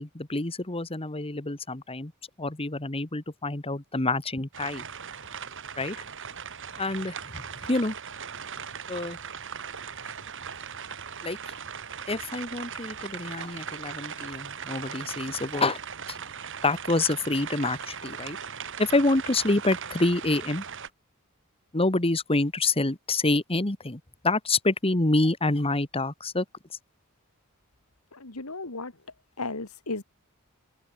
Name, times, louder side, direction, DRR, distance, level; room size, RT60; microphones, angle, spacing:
voice 1, 0.0-2.1 2.4-4.9 5.8-6.0 6.8-7.4 7.7-7.9 8.9-9.2 11.2-11.4 12.1-15.8 16.6-18.4 18.8-20.6 21.7-26.4, left 2 dB, 25° left, 1.7 m, -27 dB
sound 1, 4.5-20.9, right 7 dB, 60° right, 7.4 m, -39 dB
voice 2, 28.1-28.9 29.4-30.0, left 3 dB, 80° left, 2.4 m, -34 dB
open air
head